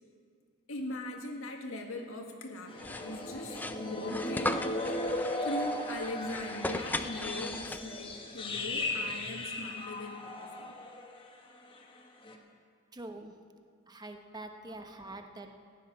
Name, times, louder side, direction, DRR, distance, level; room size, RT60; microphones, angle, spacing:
voice 1, 0.7-4.6 5.4-10.7, left 1 dB, 80° left, 2 dB, 1.7 m, -40 dB
sound 1, 2.7-11.3 11.5-11.8 12.2-12.4, left 1 dB, 25° left, 1.3 m, -37 dB
sound 2, 2.8-8.1, left 2 dB, 10° left, 0.4 m, -38 dB
voice 2, 12.9-13.3 13.9-15.5, right 2 dB, 20° right, 5 dB, 0.9 m, -45 dB
15.0 x 10.5 x 6.0 m, 2.1 s
head